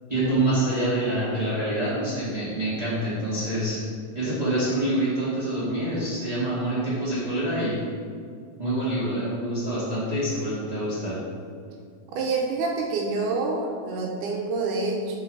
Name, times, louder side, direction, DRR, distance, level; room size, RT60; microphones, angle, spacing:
voice 1, 0.1-3.8 4.1-7.8 8.6-11.2, right 1 dB, 30° right, -9 dB, 0.6 m, -26 dB
voice 2, 12.1-15.2, right 3 dB, 80° right, 0 dB, 2.2 m, -27 dB
5.7 x 5.3 x 5.4 m, 2.2 s
omnidirectional pair, 3.7 m